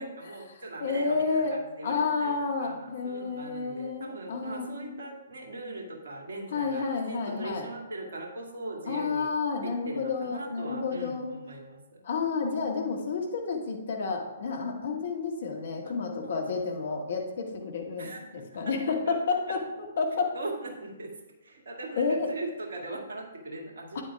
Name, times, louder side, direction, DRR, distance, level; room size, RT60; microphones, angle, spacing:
voice 1, 0.0-2.3 2.6-9.3 9.6-12.0 15.8-15.9 16.2-16.6 18.0-18.7 19.1-19.2 19.5-19.6 20.3-21.1 21.4-24.0, right 2 dB, 60° right, 1 dB, 2.1 m, -40 dB
voice 2, 0.8-1.6 1.8-4.9 6.5-7.7 8.9-11.3 12.0-19.6 20.0-20.3 22.0-22.3 24.0-24.1, left 4 dB, 55° left, 1 dB, 1.7 m, -30 dB
12.0 x 9.3 x 2.4 m, 1.0 s
figure-of-eight pair, 125°, 0 cm